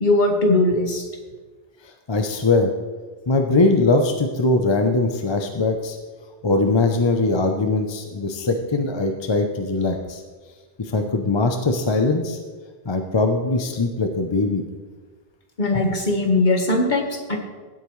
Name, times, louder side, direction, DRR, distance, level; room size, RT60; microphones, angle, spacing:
voice 1, 0.0-1.0 15.6-17.4, left 2 dB, 50° left, 3 dB, 1.5 m, -20 dB
voice 2, 2.1-2.7 3.3-6.0 6.4-10.2 10.8-12.4 12.9-14.6, left 3 dB, 30° left, 5 dB, 0.6 m, -21 dB
16.5 x 8.4 x 3.2 m, 1.4 s
omnidirectional pair, 1.1 m